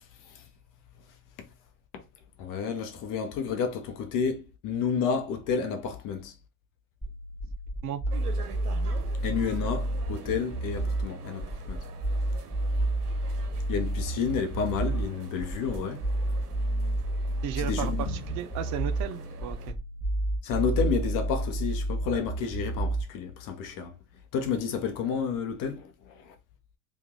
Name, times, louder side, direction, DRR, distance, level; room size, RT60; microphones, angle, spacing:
voice 1, 2.4-6.3 9.2-11.8 13.7-16.0 17.6-18.1 20.4-23.9 24.3-26.3, left 6 dB, 45° left, 0.9 m, -30 dB
sound 1, 7.0-23.0, right 1 dB, 5° left, 0.9 m, -30 dB
sound 2, 8.1-19.7, right 6 dB, 85° right, 0.8 m, -47 dB
voice 2, 17.4-19.8, right 9 dB, 40° right, 0.6 m, -34 dB
3.0 x 2.5 x 3.7 m
hypercardioid pair, 85°, 45 cm